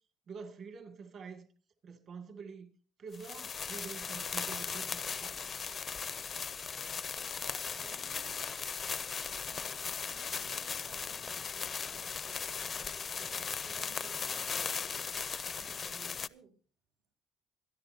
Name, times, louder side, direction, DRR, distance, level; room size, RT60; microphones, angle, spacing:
voice 1, 0.3-1.5 1.8-2.7 3.0-5.4, right 5 dB, 45° right, 2.2 m, -47 dB
sound 1, 3.1-16.3, left 6 dB, 30° left, 0.5 m, -38 dB
voice 2, 7.3-8.7 9.5-16.5, right 5 dB, 65° right, 2.7 m, -58 dB
25.5 x 11.0 x 2.8 m
cardioid pair, 130°, 0 cm